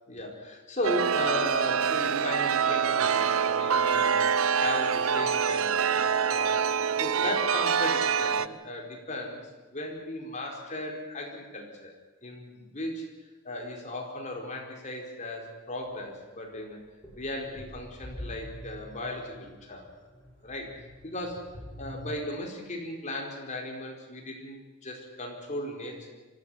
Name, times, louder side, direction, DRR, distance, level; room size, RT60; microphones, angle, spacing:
voice 1, 0.0-4.3 4.5-9.4 9.7-11.9 12.2-16.8 17.1-19.9 20.4-26.1, left 1 dB, 35° left, 1 dB, 4.7 m, -36 dB
Chime, 0.8-8.5, right 7 dB, 85° right, 0.7 m, -25 dB
sound 1, 17.0-22.1, left 1 dB, 10° left, 7.3 m, -45 dB
24.5 x 14.5 x 9.8 m, 1.3 s
head